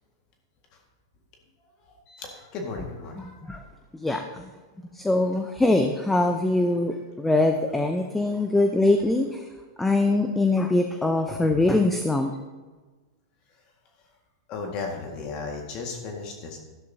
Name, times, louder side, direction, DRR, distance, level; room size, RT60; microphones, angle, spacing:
voice 1, 1.9-3.4 14.5-16.6, left 4 dB, 40° left, 2 dB, 1.8 m, -35 dB
voice 2, 3.2-3.6 4.0-4.5 4.9-9.5 9.8-12.3, left 2 dB, 5° left, 5 dB, 0.7 m, -23 dB
12.5 x 11.5 x 2.8 m, 1.3 s
hypercardioid pair, 120°, 2 cm